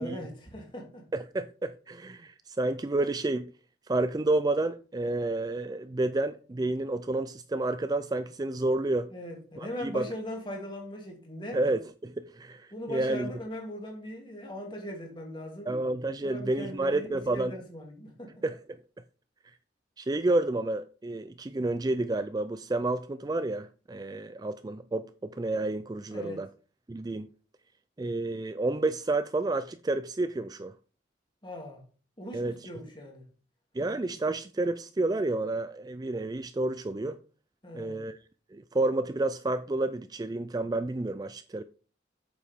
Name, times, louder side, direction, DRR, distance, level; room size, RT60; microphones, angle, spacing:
voice 1, 0.0-1.1 9.1-11.7 12.7-15.7 16.2-18.4 26.1-26.5 31.4-31.8 32.2-33.3 37.6-38.0, left 1 dB, 25° left, 2.5 m, -40 dB
voice 2, 1.1-3.5 3.9-9.1 9.6-10.1 11.5-13.3 15.7-17.5 18.4-18.6 20.0-26.5 26.9-27.3 28.0-30.7 32.3-32.5 33.7-37.2 37.7-38.2 38.5-41.6, right 2 dB, 20° right, 0.3 m, -30 dB
8.4 x 7.1 x 3.6 m
head